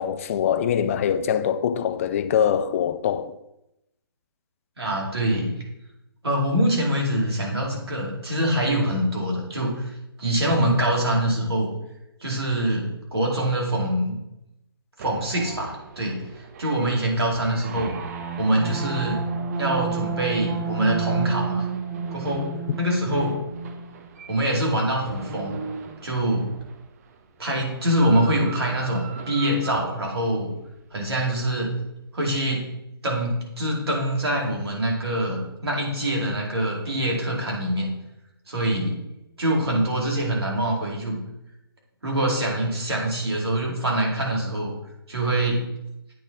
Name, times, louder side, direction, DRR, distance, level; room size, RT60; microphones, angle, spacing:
voice 1, 0.0-3.3, left 8 dB, 35° left, 0.4 m, -23 dB
voice 2, 4.8-5.5 6.2-9.9 10.2-11.7 12.2-14.2 15.0-16.2 16.6-18.0 18.4-19.2 19.6-21.6 22.1-23.4 24.3-25.6 26.0-26.5 27.4-30.5 30.9-31.7 32.1-32.7 33.0-37.9 38.5-39.0 39.4-41.2 42.0-44.7 45.1-45.6, right 1 dB, 80° right, 2.4 m, -24 dB
sound 1, 15.0-26.8 27.6-30.3, right 5 dB, 40° right, 0.6 m, -33 dB
8.6 x 4.0 x 3.9 m
hypercardioid pair, 145°, 13 cm